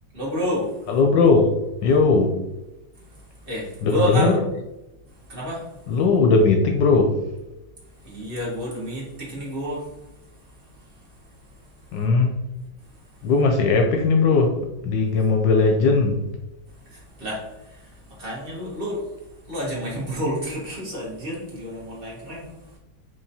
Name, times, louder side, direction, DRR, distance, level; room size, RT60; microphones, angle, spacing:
voice 1, 0.1-0.7 3.5-4.4 5.3-5.6 8.0-9.8 16.9-17.4 17.7-17.8 18.2-19.1 19.5-22.5, equal, 30° right, -5 dB, 1.4 m, -29 dB
voice 2, 0.9-1.5 1.8-2.3 3.8-4.4 5.9-7.1 11.9-12.3 13.2-14.6 14.8-16.2, left 4 dB, 75° left, 3 dB, 1.2 m, -18 dB
4.6 x 3.1 x 2.7 m, 0.97 s
omnidirectional pair, 2.2 m